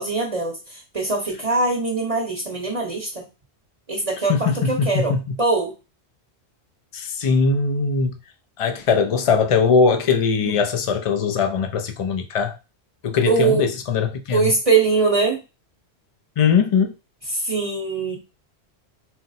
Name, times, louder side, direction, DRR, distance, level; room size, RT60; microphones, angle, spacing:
voice 1, 0.0-3.3 3.9-5.7 10.4-10.6 13.2-13.7 14.3-15.4 17.3-18.2, right 4 dB, 35° right, 0.9 m, -22 dB
voice 2, 4.3-5.2 6.9-8.1 8.6-12.6 13.0-14.5 16.4-16.9, left 5 dB, 60° left, 0.3 m, -20 dB
4.1 x 2.0 x 4.0 m
omnidirectional pair, 1.1 m